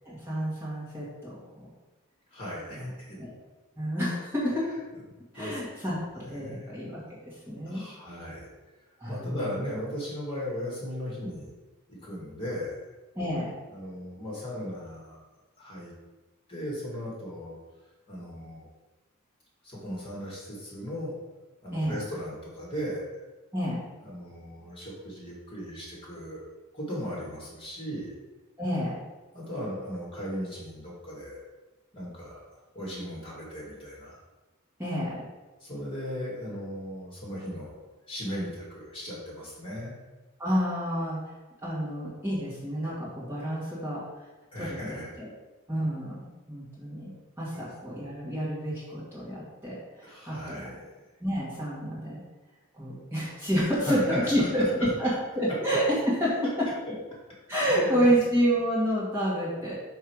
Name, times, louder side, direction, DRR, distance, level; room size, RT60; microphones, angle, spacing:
voice 1, 0.0-1.7 2.7-2.9 3.2-3.3 3.8-4.7 5.3-7.8 9.0-9.5 13.2-13.5 21.7-22.0 23.5-23.8 28.6-28.9 34.8-35.2 40.4-41.2 41.6-44.0 44.6-45.3 45.7-50.7 51.2-52.2 52.7-56.7 57.5-59.7, equal, 10° right, -8 dB, 1.9 m, -29 dB
voice 2, 2.3-3.2 5.3-5.9 6.2-6.7 7.7-8.5 9.1-11.5 11.9-12.8 13.7-15.2 15.6-15.9 16.5-17.6 18.1-18.7 19.6-21.1 21.6-23.1 24.0-26.5 26.7-28.1 29.3-31.4 31.9-32.4 32.7-34.2 35.6-37.8 38.1-40.0 44.5-45.2 47.5-47.6 50.0-51.0 53.7-55.1 56.9-57.0 57.7-58.1, equal, 25° left, -5 dB, 2.3 m, -37 dB
5.7 x 5.6 x 4.7 m, 1.2 s
head